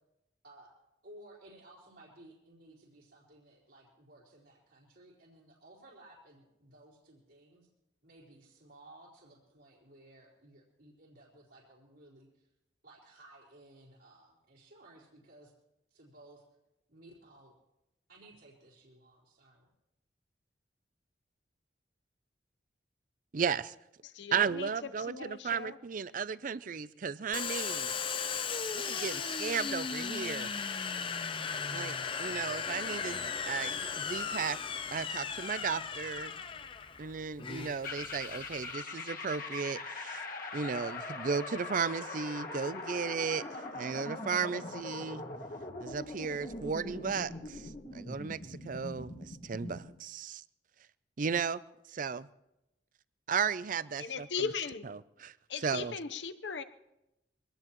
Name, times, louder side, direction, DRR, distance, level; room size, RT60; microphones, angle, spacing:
voice 1, 1.0-7.7 8.0-12.5 12.8-15.5 15.9-16.4 16.9-17.5 18.1-19.7, right 1 dB, 75° right, -8 dB, 4.3 m, -57 dB
voice 2, 23.3-23.8 24.3-27.9 28.7-30.5 31.7-34.6 34.9-36.4 37.0-40.2 40.5-45.3 45.8-50.4 51.2-51.6 51.9-52.3 53.3-54.3 54.8-55.3 55.6-55.9, right 6 dB, 50° right, 17 dB, 0.5 m, -35 dB
voice 3, 24.0-24.7 25.1-25.8 54.0-54.9 55.5-56.6, left 5 dB, 90° left, 10 dB, 0.9 m, -38 dB
Domestic sounds home sounds, 27.3-38.7, left 6 dB, 30° left, 0.5 m, -36 dB
sound 1, 37.8-49.9, left 3 dB, 50° left, 1.7 m, -42 dB
23.5 x 18.5 x 3.1 m, 0.90 s
head